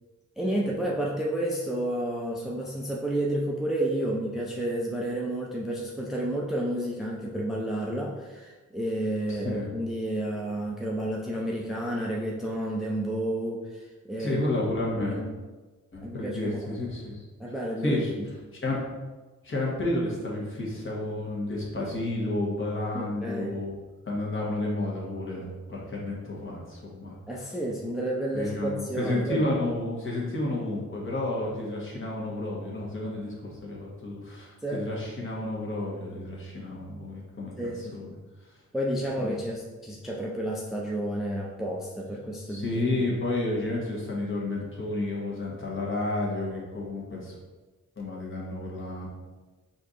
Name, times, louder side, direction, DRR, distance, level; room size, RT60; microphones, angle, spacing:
voice 1, 0.4-14.4 14.8-15.3 16.0-16.8 17.4-18.3 22.9-23.6 27.3-29.5 34.6-34.8 37.6-37.9 38.7-43.0, right 1 dB, ahead, -2 dB, 0.5 m, -31 dB
voice 2, 9.3-9.7 14.2-15.2 15.9-17.2 17.8-18.1 18.6-18.8 19.4-23.8 24.1-27.5 28.3-38.1 39.2-39.3 42.5-47.4 48.0-49.1, left 2 dB, 40° left, -4 dB, 1.4 m, -31 dB
4.5 x 2.8 x 3.7 m, 1.3 s
cardioid pair, 85°, 31 cm